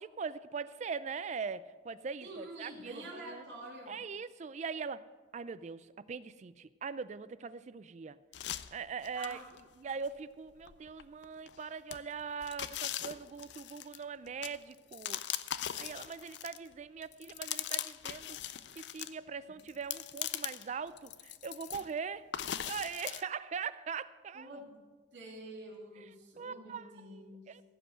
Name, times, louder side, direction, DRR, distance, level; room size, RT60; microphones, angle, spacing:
voice 1, 0.0-3.4 3.9-5.0 5.3-8.2 8.4-9.4 9.8-15.2 15.7-24.5 26.0-26.1 26.4-27.6, right 5 dB, 40° right, 16 dB, 0.3 m, -41 dB
voice 2, 2.2-4.0 9.1-9.5 24.3-24.8 25.1-27.5, right 1 dB, 70° right, -2 dB, 3.0 m, -47 dB
sound 1, 8.3-9.6 10.1-10.2 10.6-11.6 11.9-16.7 17.0-19.1 19.6-20.7 21.0-21.9 22.3-23.2, left 11 dB, 70° left, 0.5 m, -40 dB
16.0 x 5.4 x 7.6 m, 1.4 s
head